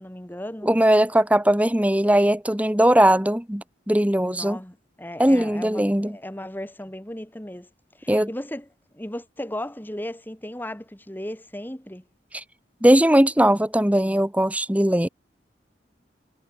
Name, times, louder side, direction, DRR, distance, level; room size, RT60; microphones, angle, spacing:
voice 1, 0.0-0.7 4.2-7.7 8.0-8.7 8.9-12.0, left 1 dB, 10° left, 1.7 m, -36 dB
voice 2, 0.6-4.6 5.2-6.2 8.1-8.3 12.3-12.4 12.8-15.1, right 1 dB, 10° right, 1.4 m, -19 dB
head